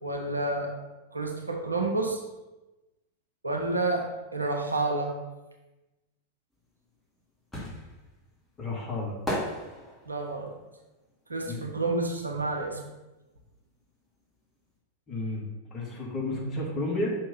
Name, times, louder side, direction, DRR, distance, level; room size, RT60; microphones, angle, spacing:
voice 1, 0.0-0.7 1.1-2.2 3.4-4.1 4.3-5.1 10.1-10.5 11.3-12.8 16.3-16.6, right 2 dB, 80° right, 1 dB, 1.0 m, -29 dB
sound 1, 6.6-12.5 12.8-14.4 14.6-14.7, equal, ahead, 2.0 m, -37 dB
voice 2, 8.6-9.2 11.5-11.7 15.1-17.1, left 2 dB, 20° left, -3 dB, 2.1 m, -32 dB
6.0 x 3.8 x 5.6 m, 1.1 s
figure-of-eight pair, 90°, 0 cm